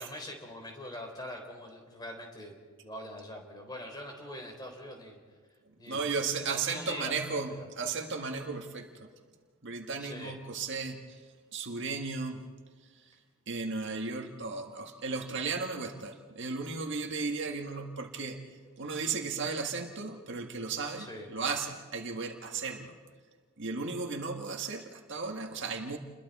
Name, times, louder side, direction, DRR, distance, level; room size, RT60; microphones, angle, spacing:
voice 1, 0.0-5.2 5.8-6.0 6.3-7.1 7.5-7.7 10.0-10.3 21.0-21.3, left 1 dB, 20° left, 2 dB, 3.8 m, -43 dB
voice 2, 5.9-8.9 9.6-11.2 11.5-12.4 13.0-13.1 13.5-18.4 18.8-22.9 23.6-26.0, right 4 dB, 55° right, 3 dB, 1.7 m, -35 dB
30.0 x 22.0 x 4.2 m, 1.5 s
head